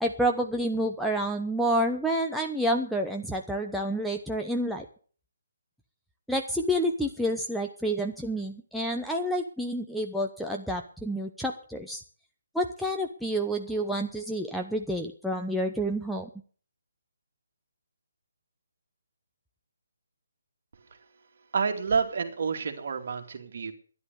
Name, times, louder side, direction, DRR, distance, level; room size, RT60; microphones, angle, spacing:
voice 1, 0.0-4.9 6.3-12.0 12.5-16.3, equal, ahead, 1 dB, 0.8 m, -29 dB
voice 2, 21.5-23.7, right 5 dB, 50° right, 5 dB, 2.4 m, -29 dB
12.5 x 10.5 x 6.8 m, 0.43 s
figure-of-eight pair, 145°, 0 cm